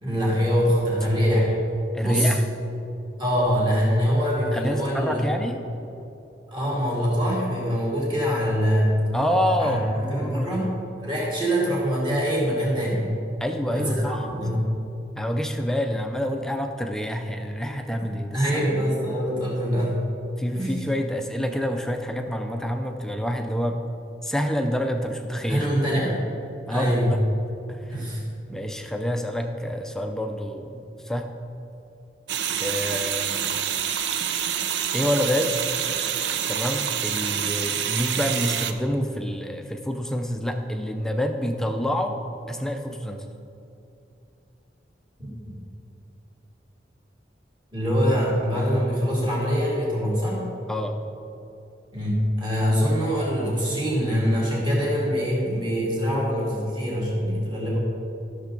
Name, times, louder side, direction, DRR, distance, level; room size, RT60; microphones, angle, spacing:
voice 1, 0.0-1.5 2.0-2.3 3.2-5.2 6.5-9.0 9.6-10.7 11.0-13.1 13.7-14.7 18.3-20.0 20.5-20.7 25.5-26.2 26.7-27.2 27.9-28.2 45.4-45.5 47.7-50.4 51.9-57.8, equal, 25° right, -5 dB, 2.3 m, -24 dB
voice 2, 1.9-2.5 4.5-5.6 9.1-10.7 13.4-14.2 15.2-18.6 20.4-23.8 24.2-25.7 25.9-26.1 26.7-27.2 27.7-27.9 28.5-31.3 32.6-33.6 34.9-35.7 36.5-42.2 42.5-43.2 50.7-51.0, equal, 5° left, 4 dB, 0.5 m, -27 dB
sound 1, 32.3-38.7, right 9 dB, 80° right, 0.5 m, -27 dB
13.0 x 6.5 x 3.9 m, 2.8 s
head